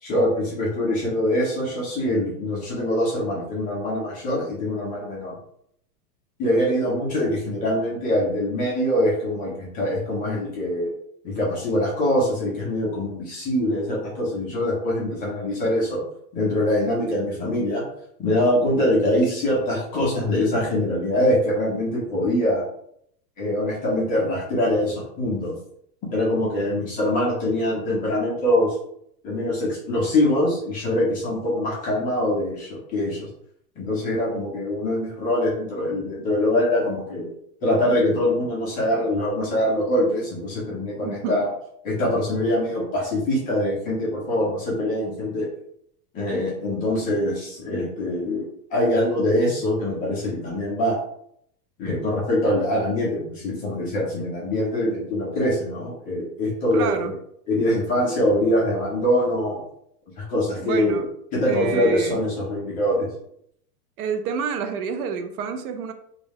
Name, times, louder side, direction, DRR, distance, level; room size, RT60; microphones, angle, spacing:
voice 1, 0.0-5.4 6.4-10.9 11.2-16.0 16.3-17.8 18.2-22.6 23.4-25.5 26.1-28.8 29.2-33.3 33.8-37.3 37.6-41.5 41.8-45.5 46.1-48.5 48.7-51.0 51.8-57.1 57.5-59.6 60.2-61.0 61.3-63.1, left 1 dB, 20° left, -5 dB, 0.4 m, -23 dB
voice 2, 41.0-41.4 56.7-57.1 60.6-61.0 61.5-62.2 64.0-65.9, right 6 dB, 65° right, 7 dB, 0.5 m, -28 dB
2.4 x 2.0 x 3.3 m, 0.70 s
supercardioid pair, 140°, 48 cm